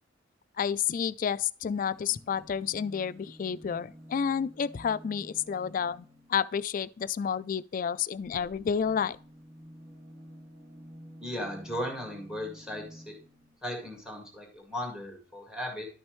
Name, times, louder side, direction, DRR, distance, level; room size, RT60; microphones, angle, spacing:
voice 1, 0.6-9.2, left 7 dB, 45° left, 0.3 m, -30 dB
sound 1, 1.6-6.5 8.1-13.6 14.5-14.6 14.8-14.9, equal, 50° right, 2.9 m, -51 dB
voice 2, 11.2-13.1 13.6-15.9, left 1 dB, 5° right, 2.1 m, -37 dB
11.5 x 6.3 x 3.1 m
head